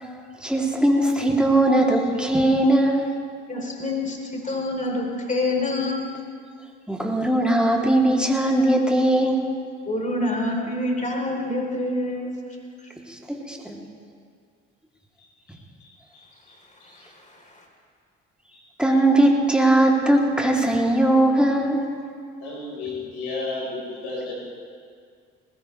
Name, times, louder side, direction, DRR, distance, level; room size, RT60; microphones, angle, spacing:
voice 1, 0.4-3.0 6.9-9.4 13.1-13.8 18.8-21.8, right 1 dB, 5° right, -1 dB, 3.0 m, -19 dB
voice 2, 3.5-6.1 9.9-12.3 17.5-17.6, left 2 dB, 25° left, 0 dB, 3.7 m, -26 dB
voice 3, 15.5-17.1 18.5-18.6 22.4-24.3, left 3 dB, 90° left, -4 dB, 4.5 m, -34 dB
20.0 x 16.0 x 3.3 m, 2.1 s
hypercardioid pair, 55°, 32 cm